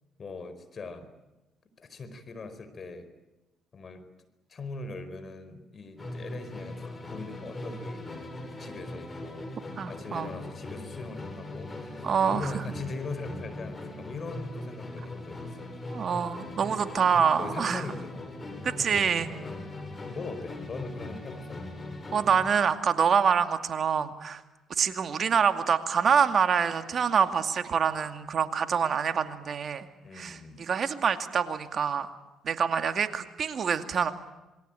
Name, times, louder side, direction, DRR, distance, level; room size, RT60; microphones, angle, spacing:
voice 1, 0.2-1.1 1.8-3.1 3.7-4.0 4.5-15.7 17.4-18.3 18.8-19.7 20.1-21.6 30.0-30.7, left 3 dB, 45° left, 11 dB, 4.6 m, -40 dB
Musical instrument, 6.0-22.6, left 2 dB, 30° left, 6.7 m, -40 dB
voice 2, 9.8-10.3 12.0-12.5 15.9-17.8 18.6-19.3 22.1-24.4 24.7-29.9 30.1-32.1 32.4-34.1, right 7 dB, 55° right, 8 dB, 2.3 m, -26 dB
27.0 x 22.0 x 9.0 m, 1.1 s
supercardioid pair, 60°, 0 cm